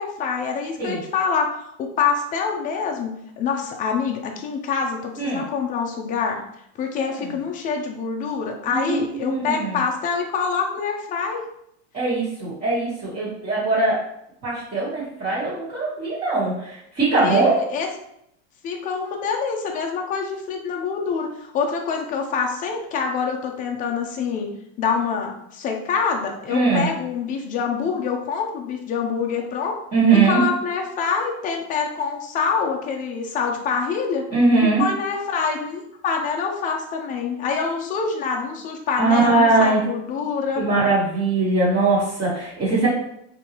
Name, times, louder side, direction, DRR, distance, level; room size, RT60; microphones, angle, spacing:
voice 1, 0.0-6.4 6.8-11.4 17.2-17.9 18.6-24.5 24.8-29.8 30.2-34.2 34.8-40.6, left 5 dB, 25° left, 2 dB, 0.5 m, -25 dB
voice 2, 8.6-9.8 11.9-14.0 14.4-17.6 26.5-26.9 29.9-30.4 34.3-34.8 39.0-39.8 40.5-42.9, right 3 dB, 25° right, -11 dB, 1.3 m, -21 dB
3.7 x 2.7 x 2.9 m, 0.76 s
supercardioid pair, 145°, 36 cm